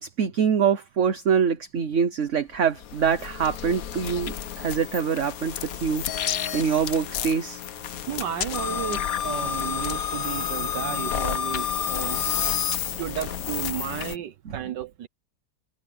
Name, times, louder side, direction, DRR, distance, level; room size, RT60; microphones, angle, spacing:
voice 1, 0.0-7.6 14.5-14.6, right 7 dB, 50° right, 1.2 m, -25 dB
sound 1, 2.5-14.2, left 9 dB, 60° left, 1.2 m, -30 dB
voice 2, 8.1-12.2 13.0-15.1, right 10 dB, 85° right, 1.7 m, -33 dB
omnidirectional pair, 1.8 m